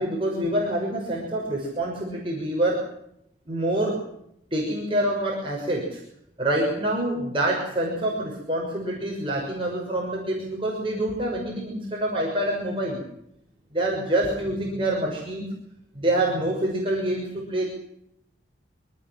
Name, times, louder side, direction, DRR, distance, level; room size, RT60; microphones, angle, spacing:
voice 1, 0.0-2.9 3.5-4.1 4.5-6.0 6.4-13.0 13.7-15.5 15.9-17.6, right 1 dB, 30° right, -3 dB, 6.3 m, -26 dB
25.5 x 18.5 x 7.5 m, 0.75 s
head